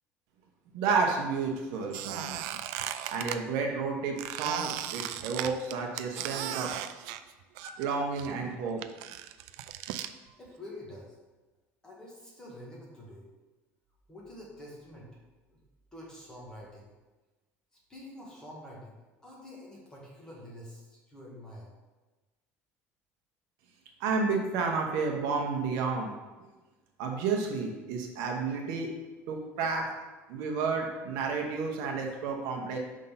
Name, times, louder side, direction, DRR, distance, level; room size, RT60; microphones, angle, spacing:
voice 1, 0.7-2.4 3.1-6.7 7.6-8.8 24.0-26.1 27.0-28.9 29.3-29.9 30.3-32.8, right 4 dB, 70° right, 1 dB, 1.0 m, -31 dB
Squeak, 1.9-3.4 4.2-7.9 8.2-10.1, right 12 dB, 90° right, 0.4 m, -37 dB
voice 2, 10.4-11.2 11.8-13.3 14.1-15.2 15.5-15.6 15.9-16.9 17.9-21.7, left 1 dB, 10° left, -4 dB, 1.4 m, -47 dB
5.4 x 3.7 x 5.6 m, 1.2 s
cardioid pair, 170°, 6 cm